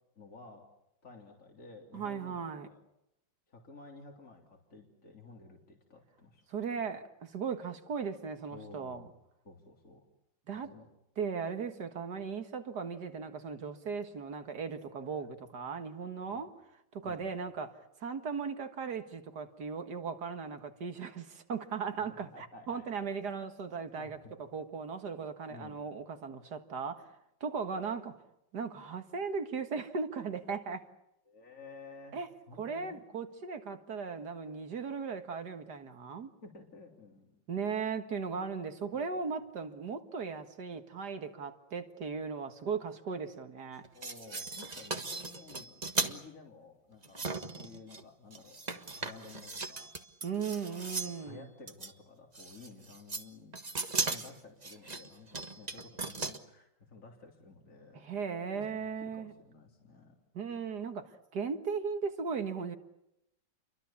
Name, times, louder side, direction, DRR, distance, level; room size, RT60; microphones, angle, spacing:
voice 1, 0.2-0.6 1.0-2.8 3.5-6.4 8.5-9.1 9.4-10.0 10.5-10.9 15.2-15.3 16.2-16.4 17.0-17.3 21.7-23.0 23.9-24.3 25.5-25.8 31.3-32.2 32.5-33.0 36.4-37.3 38.9-39.2 43.9-49.9 50.7-53.6 54.0-58.1 58.5-60.2, left 3 dB, 40° left, 3.7 m, -53 dB
voice 2, 1.9-2.7 6.5-9.1 10.5-10.7 11.2-16.5 16.9-27.1 27.4-28.1 28.5-30.8 32.1-32.3 32.6-36.3 37.5-43.8 50.2-51.4 57.9-59.3 60.3-62.8, right 5 dB, 60° right, 2.2 m, -37 dB
sound 1, 43.8-46.2 47.0-48.0 48.3-51.2 51.7-51.9 52.4-53.3 53.5-56.4, right 3 dB, 25° right, 1.4 m, -37 dB
30.0 x 24.0 x 7.2 m
omnidirectional pair, 2.0 m